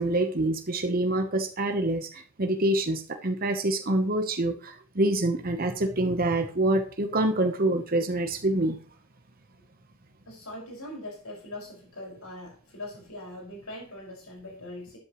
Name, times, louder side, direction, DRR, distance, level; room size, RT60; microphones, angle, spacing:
voice 1, 0.0-8.8, right 1 dB, 40° right, 5 dB, 1.0 m, -26 dB
voice 2, 10.3-15.0, left 1 dB, 75° left, -1 dB, 5.6 m, -41 dB
12.5 x 9.7 x 3.1 m, 0.40 s
head